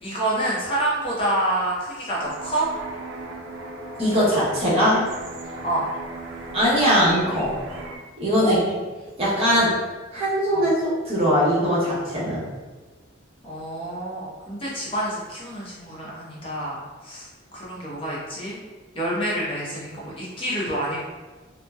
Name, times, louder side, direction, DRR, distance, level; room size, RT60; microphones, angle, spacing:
voice 1, 0.0-2.7 5.6-5.9 8.4-8.6 10.5-10.7 13.4-17.3 17.5-18.6 18.9-21.0, right 1 dB, 30° left, -6 dB, 0.6 m, -27 dB
sound 1, 2.2-8.0, right 2 dB, 80° right, 0.4 m, -37 dB
voice 2, 4.0-5.1 6.5-7.6 8.2-8.6 9.2-9.8 10.1-12.4, equal, 30° right, -9 dB, 0.9 m, -21 dB
2.7 x 2.1 x 2.2 m, 1.3 s
head